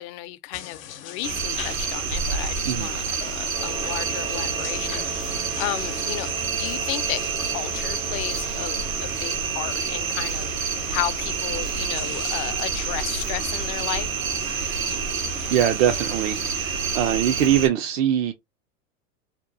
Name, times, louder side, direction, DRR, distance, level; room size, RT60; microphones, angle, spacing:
voice 1, 0.0-14.1, left 15 dB, 45° left, 0.4 m, -33 dB
sound 1, 0.5-17.1, left 10 dB, 80° left, 0.7 m, -43 dB
sound 2, 1.2-17.7, right 5 dB, 90° right, 1.0 m, -28 dB
sound 3, 3.5-14.3, right 4 dB, 15° right, 0.4 m, -42 dB
voice 2, 15.5-18.3, right 10 dB, 70° right, 0.6 m, -22 dB
2.9 x 2.2 x 2.5 m
hypercardioid pair, 100°, 40 cm